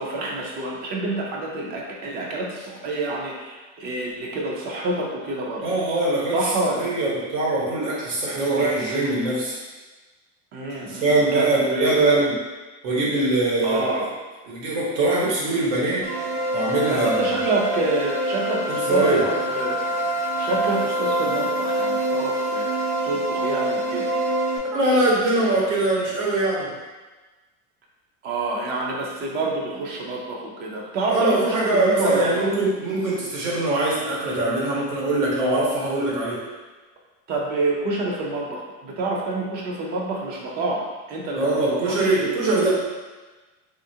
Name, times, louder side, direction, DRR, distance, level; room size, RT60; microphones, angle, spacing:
voice 1, 0.0-5.6 6.3-6.9 10.5-12.0 13.6-14.1 16.9-19.8 20.4-22.7 23.0-24.1 28.2-32.5 37.3-42.3, right 2 dB, 30° right, -1 dB, 0.4 m, -27 dB
voice 2, 5.6-6.4 6.8-9.6 10.8-12.3 12.8-14.0 14.5-16.1 16.5-17.3 18.7-19.2 24.7-26.7 31.1-36.4 41.3-42.7, right 2 dB, 90° right, -6 dB, 1.2 m, -22 dB
sound 1, 16.0-24.6, right 1 dB, 70° right, 0.7 m, -25 dB
3.3 x 2.5 x 2.7 m, 1.2 s
supercardioid pair, 160°, 36 cm